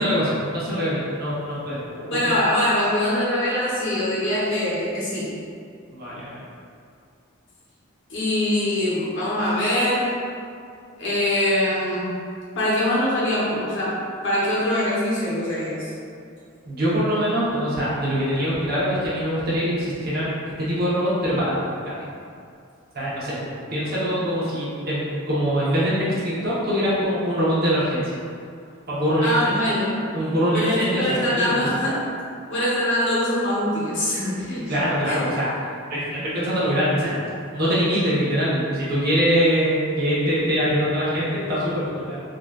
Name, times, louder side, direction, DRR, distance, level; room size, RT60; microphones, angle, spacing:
voice 1, 0.0-2.4 5.9-6.4 16.7-21.6 22.0-22.1 22.9-23.5 23.7-28.1 28.9-29.5 30.1-31.0 31.3-31.6 34.7-35.5 35.9-42.2, equal, 45° right, -8 dB, 0.8 m, -23 dB
voice 2, 2.1-5.4 8.1-10.2 11.0-12.1 12.6-15.9 29.2-30.0 30.5-32.0 32.5-34.8 35.0-35.2, left 1 dB, 60° left, -7 dB, 0.9 m, -23 dB
3.7 x 2.4 x 2.3 m, 2.4 s
head